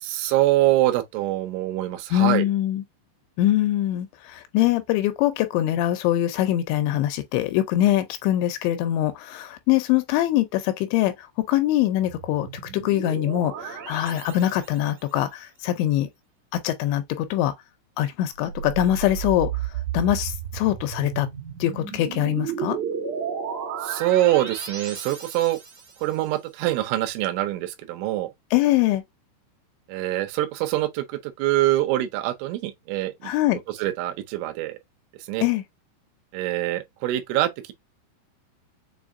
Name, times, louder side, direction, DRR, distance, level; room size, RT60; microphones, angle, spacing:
voice 1, 0.0-2.5 23.8-25.6 26.0-28.3 29.9-33.3 33.8-34.8 35.3-35.4 36.3-37.7, right 15 dB, 90° right, 3.2 m, -24 dB
voice 2, 2.1-2.8 3.4-12.5 12.7-16.1 16.5-17.5 18.0-21.3 21.6-22.8 28.5-29.0 33.2-33.6 35.4-35.6, left 13 dB, 85° left, 2.8 m, -23 dB
sound 1, 12.0-15.1 18.4-26.1, right 8 dB, 55° right, 2.3 m, -33 dB
7.1 x 2.6 x 2.6 m
omnidirectional pair, 5.4 m